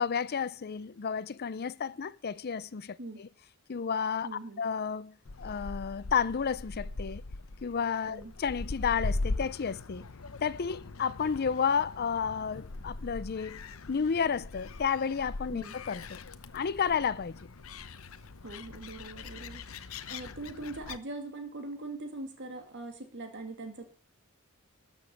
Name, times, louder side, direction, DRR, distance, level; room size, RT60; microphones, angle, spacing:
voice 1, 0.0-3.3 3.7-7.2 7.6-10.1 10.4-13.6 13.9-16.2 16.5-17.4, left 6 dB, 45° left, 0.5 m, -31 dB
voice 2, 4.2-4.6 8.1-8.3 15.5-15.7 18.4-23.9, right 2 dB, 55° right, 2.1 m, -42 dB
Gull seagull, 5.2-21.0, left 2 dB, 70° left, 0.9 m, -40 dB
13.0 x 7.2 x 7.2 m
head